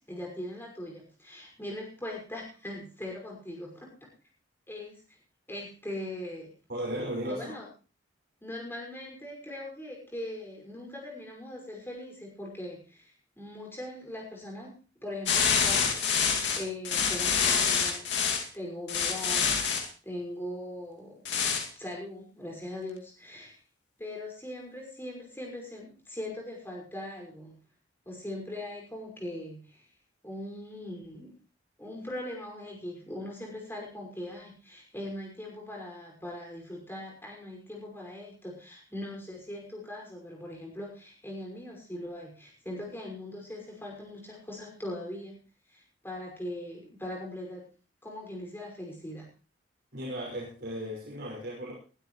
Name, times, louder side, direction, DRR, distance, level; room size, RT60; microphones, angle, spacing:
voice 1, 0.1-3.9 4.7-5.0 5.5-6.5 7.3-7.7 8.4-14.7 15.0-18.1 18.5-21.2 21.7-23.6 24.0-27.6 28.0-29.9 30.2-31.3 31.8-45.4 45.7-47.6 48.0-49.3, left 1 dB, 10° left, -1 dB, 5.8 m, -40 dB
voice 2, 6.7-7.6 49.9-51.7, equal, 60° right, -4 dB, 5.9 m, -35 dB
sound 1, 15.3-18.4 18.9-19.9 21.2-21.7, left 6 dB, 65° left, 2.4 m, -26 dB
21.0 x 12.5 x 3.2 m, 0.36 s
head